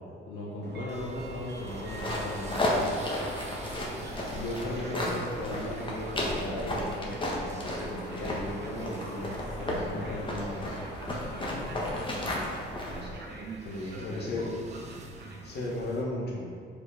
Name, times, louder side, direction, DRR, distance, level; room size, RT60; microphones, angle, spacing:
voice 1, 0.0-3.0 4.3-10.8 11.1-11.6 13.6-14.5 14.9-15.1, left 1 dB, 80° left, -5 dB, 1.4 m, -37 dB
Train, 0.6-16.1, right 3 dB, 60° right, 1.2 m, -45 dB
sound 1, 0.9-16.0, right 3 dB, 35° right, 0.8 m, -49 dB
sound 2, 1.7-13.1, left 1 dB, 25° left, 1.3 m, -34 dB
voice 2, 11.7-12.7 13.9-14.5 15.4-16.5, left 2 dB, 55° left, -3 dB, 1.6 m, -35 dB
4.9 x 4.8 x 4.9 m, 2.1 s
cardioid pair, 90°, 20 cm